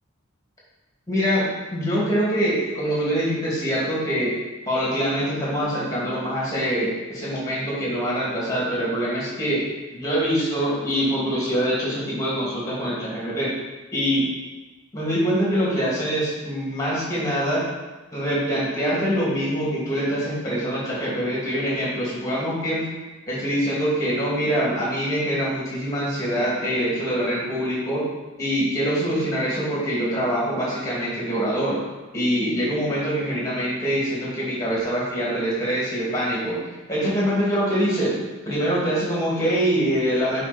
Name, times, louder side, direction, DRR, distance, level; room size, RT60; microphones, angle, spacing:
voice 1, 1.1-1.5 1.7-4.3 4.7-9.6 9.9-13.5 13.9-14.3 14.9-17.6 18.1-22.8 23.3-28.0 28.4-31.8 32.1-36.6 36.9-38.1 38.4-40.4, equal, 15° left, -6 dB, 2.5 m, -24 dB
8.3 x 4.6 x 4.3 m, 1.2 s
head